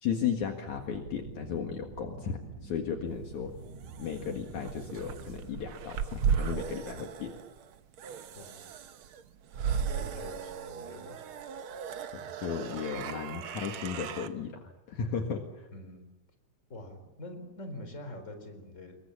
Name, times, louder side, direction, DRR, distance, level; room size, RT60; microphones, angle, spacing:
voice 1, 0.0-3.5 4.0-7.3 12.1-15.7, left 7 dB, 60° left, 4 dB, 3.0 m, -35 dB
sound 1, 0.7-5.7, right 4 dB, 55° right, 6.6 m, -46 dB
sound 2, 3.2-14.3, right 7 dB, 75° right, 1.2 m, -36 dB
voice 2, 8.4-8.7 9.9-11.2 15.7-16.1 16.7-19.0, left 1 dB, 20° left, 7 dB, 4.2 m, -45 dB
27.5 x 22.5 x 7.2 m, 0.95 s
omnidirectional pair, 3.9 m